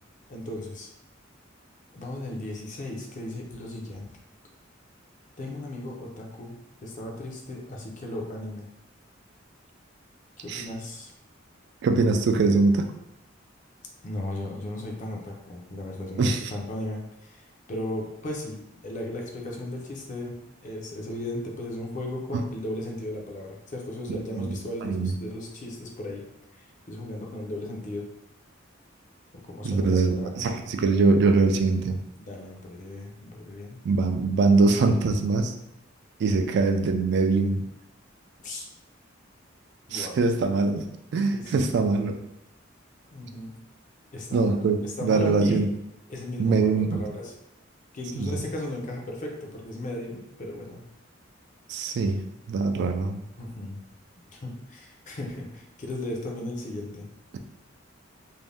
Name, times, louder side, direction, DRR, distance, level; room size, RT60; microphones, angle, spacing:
voice 1, 0.3-0.9 1.9-4.1 5.4-8.7 10.4-11.1 14.0-18.6 18.8-20.4 20.6-26.2 26.5-28.1 29.4-30.4 32.2-33.8 38.4-38.6 39.9-40.2 41.3-41.5 43.1-43.5 44.1-44.6 44.8-45.7 46.1-47.3 47.9-50.8 53.4-53.8 54.3-57.0, left 1 dB, 40° left, 0 dB, 0.5 m, -36 dB
voice 2, 11.8-12.9 16.2-16.4 24.1-24.6 24.8-25.1 29.6-32.0 33.8-35.5 36.2-37.6 39.9-42.2 44.3-45.7 46.4-47.0 48.2-48.4 51.7-53.2, right 3 dB, 60° right, 5 dB, 0.3 m, -23 dB
2.6 x 2.1 x 3.3 m, 0.83 s
head